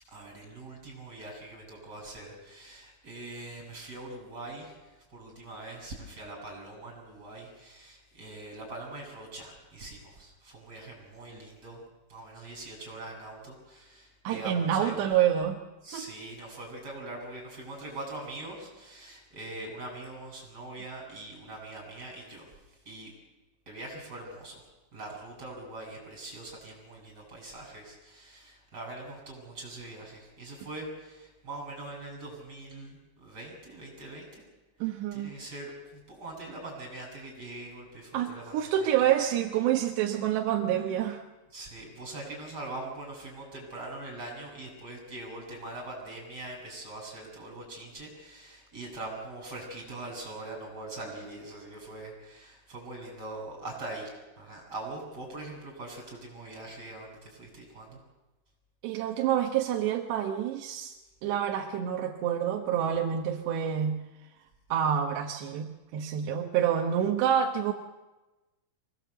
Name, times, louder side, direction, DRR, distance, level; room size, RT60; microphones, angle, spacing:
voice 1, 0.1-11.8 12.1-15.0 15.8-22.5 22.9-23.1 23.7-24.6 24.9-34.4 35.1-38.5 38.8-38.9 41.5-54.1 54.4-58.0, right 2 dB, 20° right, -1 dB, 7.1 m, -42 dB
voice 2, 14.2-15.6 15.9-16.1 34.8-35.4 38.1-41.2 58.8-61.0 61.2-64.0 64.7-65.7 65.9-67.7, right 9 dB, 70° right, 3 dB, 2.8 m, -27 dB
24.5 x 19.0 x 8.0 m, 1.1 s
omnidirectional pair, 6.0 m